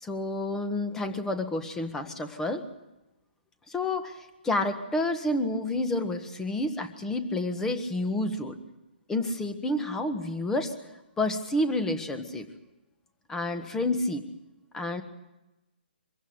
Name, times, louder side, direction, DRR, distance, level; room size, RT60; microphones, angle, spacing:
voice 1, 0.0-2.6 3.7-8.6 9.1-10.7 11.2-12.5 13.3-14.3 14.7-15.0, left 2 dB, 10° left, 8 dB, 1.5 m, -29 dB
24.5 x 15.5 x 7.9 m, 0.99 s
hypercardioid pair, 155°, 6 cm